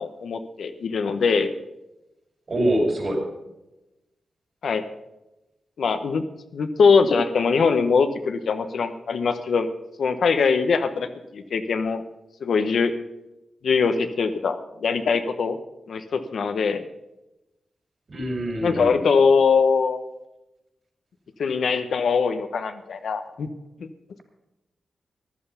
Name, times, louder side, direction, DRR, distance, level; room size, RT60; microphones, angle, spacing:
voice 1, 0.0-1.5 4.6-4.8 5.8-6.2 6.5-9.7 10.0-11.1 11.3-12.0 12.4-12.9 13.6-15.6 15.9-16.8 18.6-20.0 21.4-23.5 23.8-23.9, left 5 dB, 75° left, 8 dB, 1.0 m, -22 dB
voice 2, 2.5-3.2 18.1-19.0, right 1 dB, 50° right, 1 dB, 5.2 m, -24 dB
15.0 x 11.0 x 5.6 m, 0.95 s
cardioid pair, 90°, 0 cm